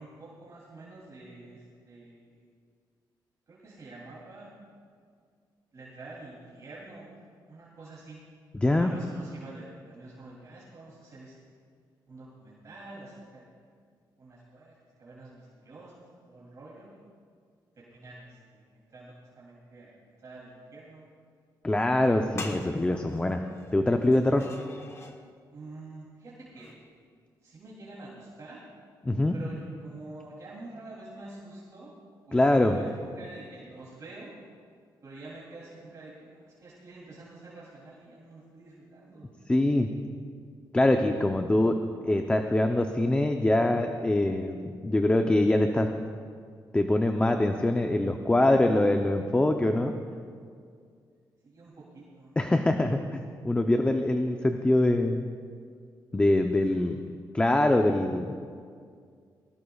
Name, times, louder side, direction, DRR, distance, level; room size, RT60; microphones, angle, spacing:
voice 1, 0.0-2.4 3.5-4.5 5.7-8.2 8.7-11.3 12.1-13.4 14.2-14.7 15.0-15.9 16.3-17.0 17.8-19.9 20.2-21.0 25.5-26.7 27.4-28.6 29.3-31.9 32.3-34.3 35.0-39.3 41.1-41.5 41.9-42.3 51.4-52.4 56.7-56.9, right 2 dB, 45° right, -7 dB, 3.0 m, -47 dB
voice 2, 8.5-8.9 21.6-23.4 23.7-24.5 29.0-29.3 32.3-32.8 39.5-39.9 40.7-41.8 42.0-45.9 46.7-49.9 52.4-53.0 53.4-55.3 56.1-57.0 57.3-58.4, left 1 dB, 15° left, 5 dB, 0.6 m, -24 dB
sound 1, 22.1-22.2 22.4-25.2 26.5-26.8, left 2 dB, 35° left, 1.2 m, -43 dB
20.5 x 17.0 x 2.4 m, 2.1 s
cardioid pair, 105°, 8 cm